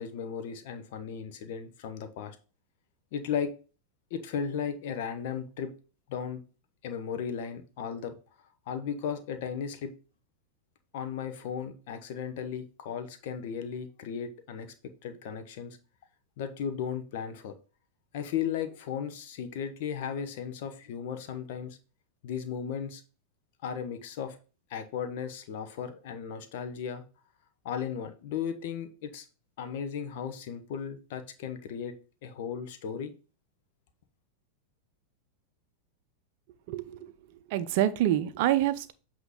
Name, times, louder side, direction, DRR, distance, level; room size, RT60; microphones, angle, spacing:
voice 1, 0.0-2.4 3.1-3.5 4.1-5.7 6.1-6.4 6.8-8.1 8.7-9.9 10.9-14.7 15.0-15.8 16.4-17.5 18.1-21.8 22.2-23.0 23.6-24.4 24.7-27.0 27.6-29.3 29.6-31.9 32.2-33.1, left 7 dB, 50° left, 8 dB, 0.9 m, -35 dB
voice 2, 36.7-37.1 37.5-38.9, right 13 dB, 50° right, 13 dB, 0.6 m, -26 dB
8.0 x 3.0 x 5.2 m, 0.36 s
figure-of-eight pair, 90°, 0 cm